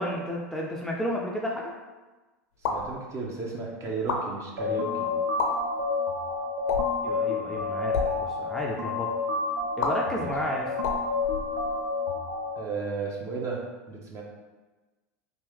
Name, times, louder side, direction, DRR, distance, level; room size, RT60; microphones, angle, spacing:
voice 1, 0.0-1.7 7.0-9.1 9.8-10.7, equal, 5° left, -3 dB, 0.5 m, -32 dB
sound 1, 2.5-2.9 3.9-4.2 5.2-5.5 6.6-7.0 7.8-8.1 9.8-9.9 10.8-11.9, left 4 dB, 70° left, 0.7 m, -30 dB
voice 2, 2.6-5.1 10.2-10.3 12.6-13.6 13.9-14.2, right 4 dB, 35° right, -1 dB, 0.9 m, -34 dB
sound 2, 4.6-12.6, left 4 dB, 75° right, 0.5 m, -29 dB
3.4 x 2.7 x 3.5 m, 1.2 s
hypercardioid pair, 85°, 8 cm